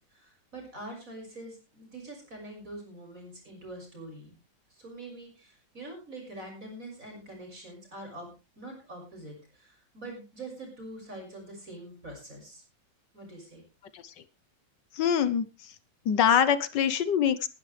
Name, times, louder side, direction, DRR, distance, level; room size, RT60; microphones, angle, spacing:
voice 1, 0.1-4.4 4.7-8.3 8.5-12.6 13.1-13.6, right 1 dB, 45° right, 2 dB, 6.5 m, -44 dB
voice 2, 14.9-15.7 16.0-17.5, left 8 dB, 70° left, 13 dB, 1.5 m, -25 dB
19.5 x 11.5 x 3.3 m, 0.31 s
omnidirectional pair, 2.0 m